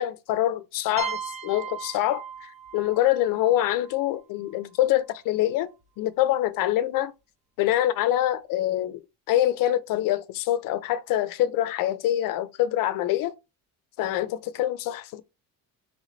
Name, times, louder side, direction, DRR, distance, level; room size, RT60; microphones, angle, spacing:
voice 1, 0.0-5.7 6.0-7.1 7.6-9.0 9.3-13.3 14.0-15.2, left 13 dB, 55° left, 0.5 m, -25 dB
sound 1, 1.0-4.6, right 7 dB, 20° right, 0.4 m, -38 dB
3.8 x 3.5 x 3.1 m
cardioid pair, 175°, 39 cm